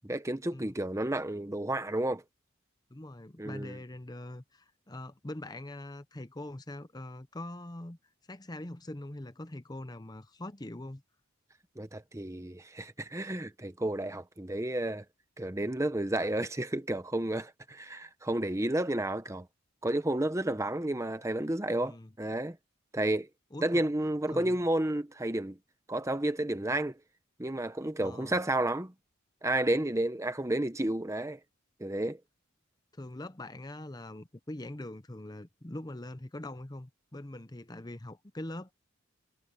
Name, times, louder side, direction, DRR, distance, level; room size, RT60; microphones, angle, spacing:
voice 1, 0.0-2.2 3.4-3.7 11.8-15.0 15.4-19.5 19.8-22.6 22.9-23.3 23.6-25.6 25.9-27.0 27.4-28.9 29.4-31.4 31.8-32.2, right 1 dB, 15° right, 0.8 m, -31 dB
voice 2, 2.9-8.0 8.3-11.0 21.7-22.1 23.5-23.8 24.3-24.6 28.0-28.4 32.9-38.7, left 1 dB, 20° left, 0.7 m, -43 dB
head